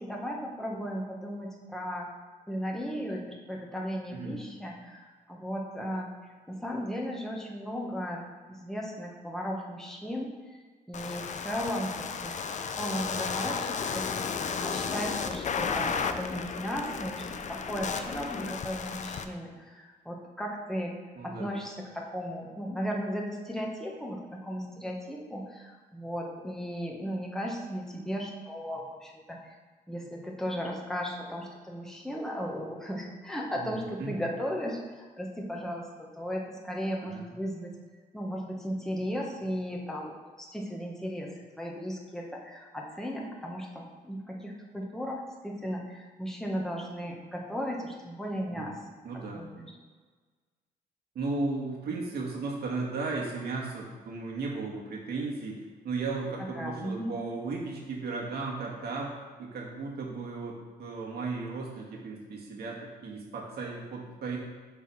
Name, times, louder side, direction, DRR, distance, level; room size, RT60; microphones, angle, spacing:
voice 1, 0.0-2.1 2.5-6.1 6.5-8.2 8.5-10.6 10.9-14.3 14.6-20.9 21.2-29.5 29.9-37.7 38.1-48.8 49.1-49.7 56.6-57.1, equal, 5° left, -2 dB, 1.6 m, -36 dB
voice 2, 4.1-4.4 21.2-21.5 33.5-34.2 37.0-37.3 48.5-48.7 49.0-49.4 51.2-55.6 55.8-59.1 59.4-64.4, right 3 dB, 70° right, -2 dB, 1.9 m, -35 dB
sound 1, 10.9-19.2, left 5 dB, 45° left, 0.6 m, -33 dB
7.3 x 4.0 x 5.9 m, 1.5 s
cardioid pair, 85°, 17 cm